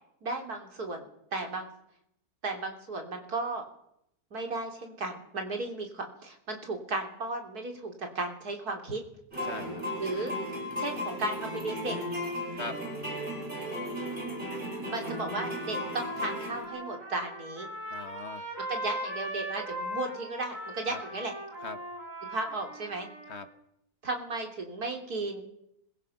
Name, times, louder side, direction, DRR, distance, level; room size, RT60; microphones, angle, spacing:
voice 1, 0.2-1.7 2.4-3.6 4.3-9.0 10.0-10.3 10.8-12.0 14.9-17.7 18.7-21.3 22.3-23.1 24.0-25.4, right 2 dB, 85° right, 3 dB, 3.8 m, -35 dB
sound 1, 9.3-16.6, left 1 dB, 35° right, 5.3 m, -35 dB
voice 2, 9.4-9.8 12.5-12.8 17.9-18.5 20.9-21.0 21.6-21.8 23.3-23.5, left 4 dB, 50° left, 10 dB, 1.4 m, -40 dB
Trumpet, 15.0-23.5, right 1 dB, 60° right, 6.1 m, -39 dB
25.5 x 22.0 x 5.9 m, 0.78 s
omnidirectional pair, 1.6 m